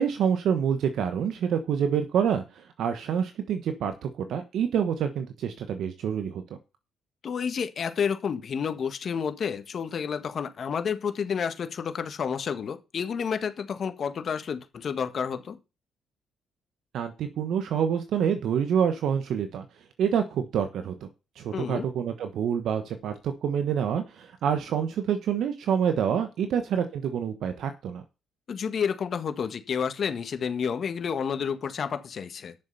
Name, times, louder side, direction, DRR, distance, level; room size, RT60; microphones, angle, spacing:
voice 1, 0.0-6.4 16.9-19.6 20.0-21.1 21.4-28.0, right 8 dB, 75° right, 1.1 m, -27 dB
voice 2, 7.2-15.6 21.5-21.9 28.5-32.5, left 7 dB, 55° left, 1.6 m, -30 dB
10.5 x 6.9 x 5.5 m
cardioid pair, 90°, 0 cm